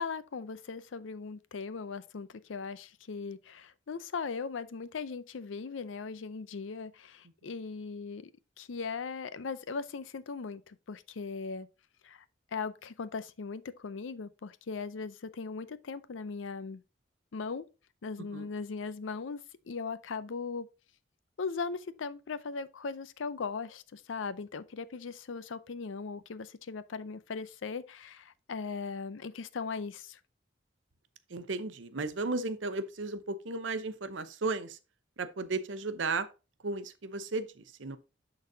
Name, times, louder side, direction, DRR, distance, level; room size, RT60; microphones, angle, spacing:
voice 1, 0.0-8.3 8.6-11.7 12.0-12.2 12.5-16.8 17.3-17.6 18.0-20.7 21.4-30.2, left 5 dB, 90° left, 0.5 m, -39 dB
voice 2, 31.3-34.8 35.2-36.3 36.6-38.0, right 3 dB, 75° right, 0.8 m, -34 dB
12.0 x 4.0 x 2.7 m
head